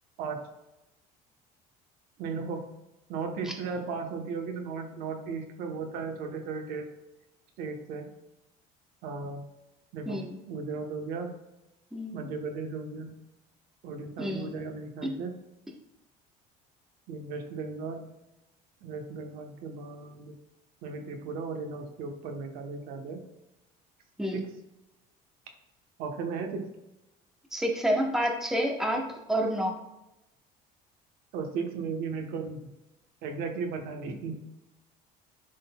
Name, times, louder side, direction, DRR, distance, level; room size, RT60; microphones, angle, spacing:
voice 1, 2.2-2.7 3.1-6.9 7.6-8.0 9.0-9.4 9.9-10.2 10.5-11.3 12.1-13.2 13.8-15.3 17.1-18.1 18.8-20.3 20.8-23.2 24.3-24.5 26.0-26.7 31.3-32.7 33.2-34.4, right 4 dB, 70° right, 4 dB, 1.0 m, -36 dB
voice 2, 10.1-10.4 11.9-12.3 14.2-14.5 15.0-15.2 24.2-24.4 27.5-29.8, equal, 5° right, 1 dB, 1.0 m, -29 dB
11.0 x 3.8 x 2.3 m, 0.94 s
cardioid pair, 140°, 16 cm